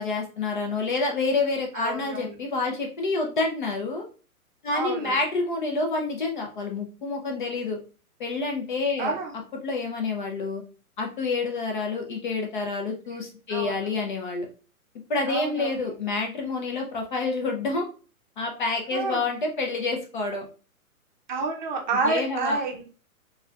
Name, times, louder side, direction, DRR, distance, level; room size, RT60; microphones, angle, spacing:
voice 1, 0.0-4.0 4.6-7.8 8.2-9.2 9.6-10.6 11.0-14.5 15.1-17.8 18.4-20.4 22.0-22.6, left 3 dB, 35° left, 2 dB, 0.5 m, -28 dB
voice 2, 1.7-2.4 4.7-5.2 9.0-9.4 13.1-13.2 13.5-13.9 15.3-15.9 18.9-19.3 21.3-22.8, right 3 dB, 35° right, 2 dB, 0.6 m, -29 dB
4.2 x 2.2 x 2.3 m, 0.37 s
hypercardioid pair, 140°, 44 cm